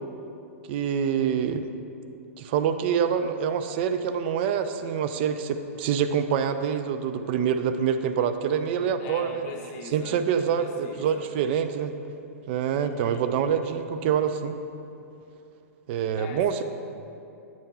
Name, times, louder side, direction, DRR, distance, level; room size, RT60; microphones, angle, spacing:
voice 1, 0.7-1.7 2.4-9.4 9.9-11.9 12.5-14.6 15.9-16.6, right 8 dB, 45° right, 9 dB, 0.3 m, -26 dB
voice 2, 9.0-11.3 12.8-13.2 16.2-16.6, left 4 dB, 35° left, 3 dB, 0.8 m, -42 dB
7.6 x 3.5 x 5.5 m, 2.7 s
figure-of-eight pair, 110°, 8 cm